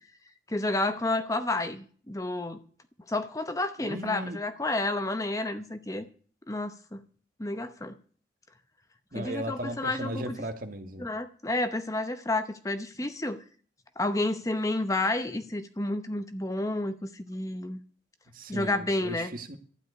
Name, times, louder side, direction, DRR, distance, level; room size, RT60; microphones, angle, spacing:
voice 1, 0.5-2.6 3.1-6.1 6.5-7.0 7.4-8.0 9.1-10.4 11.0-13.4 14.0-17.8 18.5-19.3, left 2 dB, 15° left, 0.8 m, -30 dB
voice 2, 3.8-4.4 9.1-11.1 18.3-19.6, right 1 dB, 50° right, 1.6 m, -36 dB
12.5 x 7.7 x 9.5 m
head